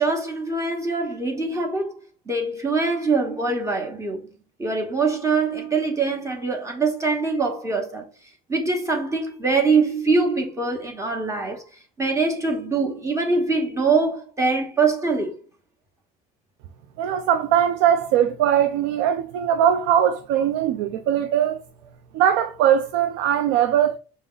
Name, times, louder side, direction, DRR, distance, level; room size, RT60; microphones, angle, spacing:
voice 1, 0.0-1.9 2.3-4.3 4.6-8.1 8.5-11.6 12.0-15.3, right 4 dB, 15° right, 0.9 m, -23 dB
voice 2, 17.0-21.6 22.1-24.0, right 10 dB, 85° right, 0.4 m, -20 dB
5.0 x 2.1 x 3.8 m
cardioid pair, 125°, 19 cm